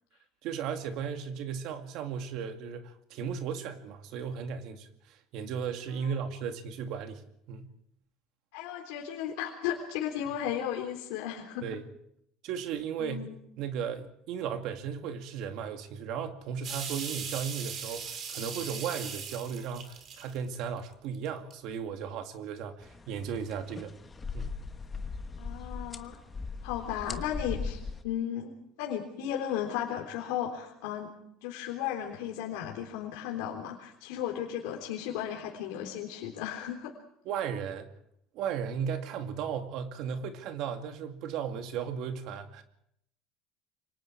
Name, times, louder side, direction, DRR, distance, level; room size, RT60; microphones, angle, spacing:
voice 1, 0.4-7.2 7.5-7.7 11.6-11.8 12.4-13.3 13.6-23.9 24.3-24.5 37.3-37.9 38.3-42.6, right 7 dB, 50° right, 6 dB, 2.3 m, -35 dB
voice 2, 5.9-6.2 8.5-11.7 13.0-13.3 25.4-26.2 26.6-28.5 28.8-31.1 31.4-36.9, left 10 dB, 80° left, 0 dB, 3.5 m, -35 dB
sound 1, 16.6-20.8 21.2-21.5, right 6 dB, 30° right, 3.1 m, -39 dB
sound 2, 22.8-28.0, left 4 dB, 15° left, 1.2 m, -39 dB
28.0 x 24.5 x 4.7 m, 0.73 s
cardioid pair, 180°, 0 cm